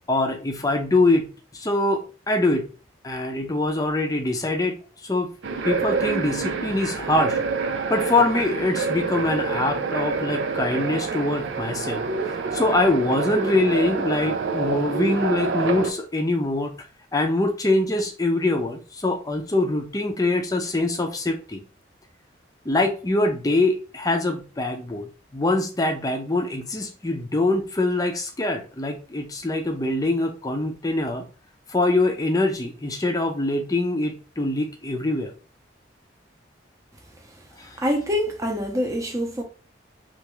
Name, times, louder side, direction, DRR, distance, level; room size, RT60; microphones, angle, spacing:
voice 1, 0.1-2.7 3.0-4.8 5.0-5.3 5.6-7.4 7.9-12.0 12.5-16.8 17.1-21.6 22.7-31.3 31.7-35.3 37.6-37.8, left 2 dB, 20° left, 0.5 m, -24 dB
sound 1, 5.4-15.9, right 4 dB, 75° right, 0.5 m, -27 dB
voice 2, 37.8-39.4, equal, 15° right, 0.7 m, -25 dB
3.3 x 2.5 x 3.0 m
head